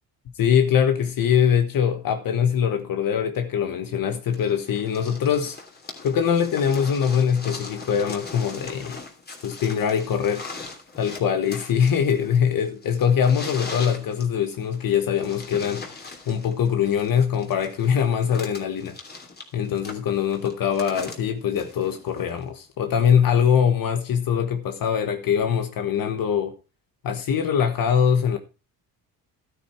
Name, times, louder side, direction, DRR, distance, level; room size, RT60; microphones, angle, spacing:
voice 1, 0.3-5.6 6.0-9.0 9.4-10.4 11.0-19.0 19.5-26.5 27.0-28.4, left 8 dB, 60° left, 1.4 m, -22 dB
sound 1, 4.3-22.4 23.5-23.6, left 3 dB, 25° left, 3.1 m, -40 dB
12.5 x 9.5 x 4.5 m
cardioid pair, 125°, 38 cm